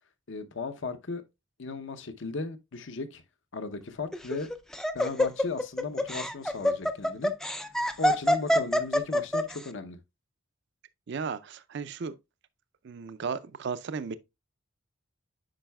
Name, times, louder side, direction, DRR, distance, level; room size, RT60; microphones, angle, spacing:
voice 1, 0.3-1.2 1.6-3.2 3.5-4.5 4.9-7.3 8.0-10.0, left 3 dB, 65° left, 0.7 m, -36 dB
Laughter, 4.1-9.6, left 1 dB, 5° left, 0.3 m, -26 dB
voice 2, 11.1-12.2 12.8-14.2, right 5 dB, 60° right, 0.4 m, -35 dB
8.8 x 5.5 x 2.2 m
head